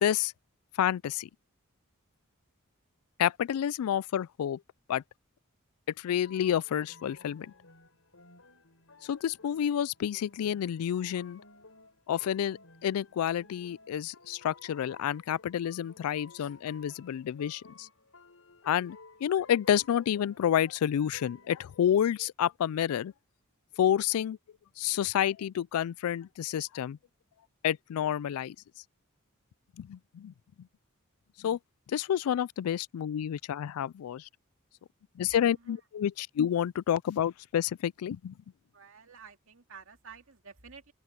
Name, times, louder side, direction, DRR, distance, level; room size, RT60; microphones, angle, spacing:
voice 1, 0.0-0.3 0.8-1.3 3.2-4.6 4.9-5.0 6.0-7.5 9.0-11.4 12.1-17.9 18.7-23.1 23.8-24.4 24.8-27.0 27.6-28.6 29.8-30.3 31.4-31.6 31.9-34.3 35.2-38.3, left 9 dB, 90° left, 0.3 m, -29 dB
sound 1, 6.2-21.8, left 3 dB, 70° left, 5.5 m, -56 dB
voice 2, 38.7-40.9, right 6 dB, 65° right, 2.6 m, -51 dB
open air
head